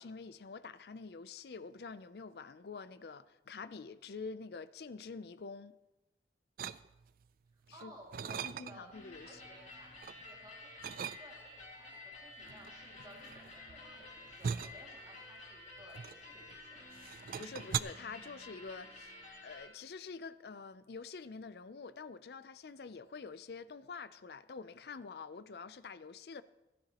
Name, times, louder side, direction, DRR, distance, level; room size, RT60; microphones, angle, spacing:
voice 1, 0.0-5.7 7.8-7.9 8.4-9.4 17.4-26.4, left 4 dB, 65° left, 0.5 m, -47 dB
sound 1, 6.6-7.3 7.7-9.0 9.4-10.2 10.8-11.6 12.5-16.6 16.9-17.8, right 7 dB, 50° right, 0.3 m, -40 dB
voice 2, 7.5-8.9 9.2-10.7 11.2-16.9, right 1 dB, 20° right, 2.2 m, -57 dB
sound 2, 8.9-19.7, left 2 dB, 40° left, 2.1 m, -52 dB
16.0 x 12.5 x 2.9 m
head